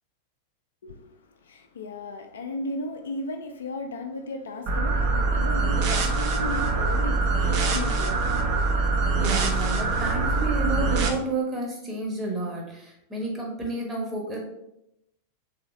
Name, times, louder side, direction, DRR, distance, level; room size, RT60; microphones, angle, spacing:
voice 1, 0.8-8.7, left 2 dB, 65° left, 0.3 m, -36 dB
sound 1, 4.7-11.1, right 3 dB, 45° right, 0.5 m, -24 dB
voice 2, 9.2-14.4, right 2 dB, 15° right, 0.9 m, -30 dB
3.2 x 2.8 x 2.5 m
figure-of-eight pair, 90°, 0 cm